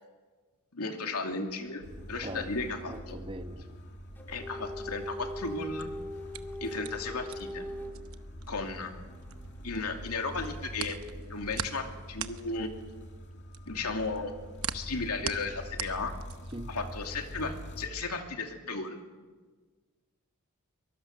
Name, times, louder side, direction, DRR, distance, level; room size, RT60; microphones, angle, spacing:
voice 1, 0.7-1.8 2.1-3.2 4.3-5.9 6.6-7.6 8.5-8.9 9.6-11.0 11.3-12.7 13.7-14.4 14.7-16.1 16.7-19.0, left 3 dB, 85° left, 4 dB, 2.7 m, -35 dB
sound 1, 0.9-3.1 4.2-8.0 8.7-9.6, equal, 10° left, 1.9 m, -42 dB
sound 2, 1.8-17.9, equal, 50° left, 2.5 m, -45 dB
voice 2, 2.9-3.8 16.5-16.8, right 1 dB, 25° right, 8 dB, 1.2 m, -41 dB
sound 3, 5.6-9.8 10.1-16.7, right 9 dB, 70° right, 1.0 m, -40 dB
23.5 x 22.5 x 6.6 m, 1.4 s
head